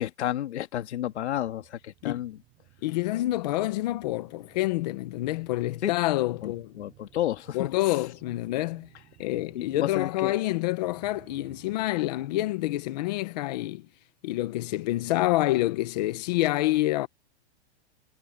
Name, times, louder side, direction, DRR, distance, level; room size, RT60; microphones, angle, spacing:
voice 1, 0.0-2.4 5.8-6.0 6.4-8.0 9.5-10.3, left 12 dB, 75° left, 2.2 m, -31 dB
sound 1, 0.9-14.1 14.4-14.5, right 19 dB, 25° right, 7.4 m, -58 dB
voice 2, 2.8-6.7 7.5-8.9 9.2-13.8 14.2-17.1, left 17 dB, 40° left, 1.0 m, -27 dB
supercardioid pair, 175°, 34 cm